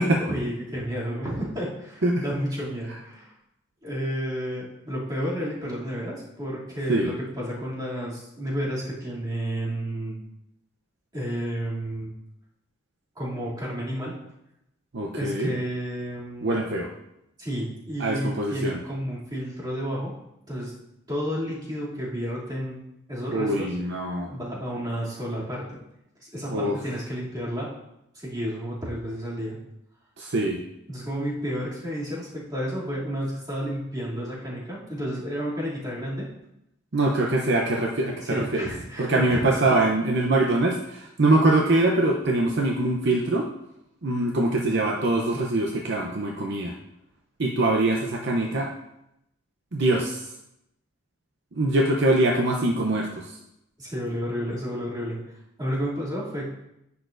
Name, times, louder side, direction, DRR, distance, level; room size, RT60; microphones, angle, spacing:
voice 1, 0.2-3.3 3.8-10.2 11.1-12.1 13.1-14.2 15.2-16.6 17.4-20.1 20.5-20.7 21.1-22.8 23.1-23.7 24.3-25.8 26.2-27.7 28.1-29.6 30.9-36.3 38.2-39.8 53.8-55.2 55.6-56.5, equal, 20° right, -8 dB, 2.7 m, -31 dB
voice 2, 14.9-15.5 16.4-16.9 18.0-18.8 23.3-24.3 26.5-26.8 30.2-30.6 36.9-38.7 39.0-43.5 44.0-46.7 47.4-48.7 49.7-50.3 51.5-53.4, right 2 dB, 55° right, 0 dB, 0.7 m, -23 dB
10.5 x 7.0 x 2.6 m, 0.83 s
head